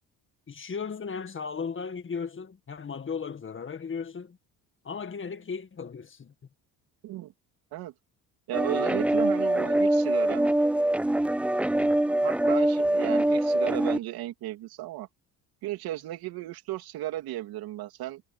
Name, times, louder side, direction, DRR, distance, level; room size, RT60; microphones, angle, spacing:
voice 1, 0.5-4.4 4.8-6.3, left 5 dB, 35° left, 1.9 m, -36 dB
sound 1, 8.5-14.0, right 1 dB, 5° right, 0.4 m, -24 dB
voice 2, 8.5-10.5 11.8-15.1 15.6-18.2, right 15 dB, 80° right, 3.2 m, -35 dB
cardioid pair, 95°, 36 cm